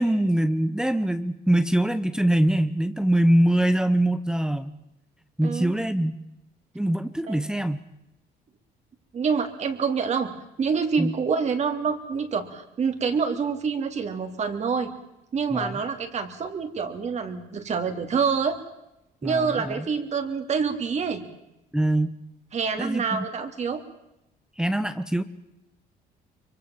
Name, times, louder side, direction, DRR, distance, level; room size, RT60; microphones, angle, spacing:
voice 1, 0.0-4.8 5.4-6.1 6.7-7.8 11.0-11.1 15.5-15.8 19.2-19.8 21.7-22.2 22.8-23.2 24.6-25.2, right 1 dB, 5° right, 11 dB, 1.0 m, -23 dB
voice 2, 5.4-5.7 7.3-7.4 9.1-10.3 10.6-14.9 15.3-18.6 19.2-21.2 22.5-23.8, right 5 dB, 40° right, 6 dB, 3.1 m, -26 dB
24.5 x 24.0 x 7.3 m, 0.87 s
cardioid pair, 110°, 17 cm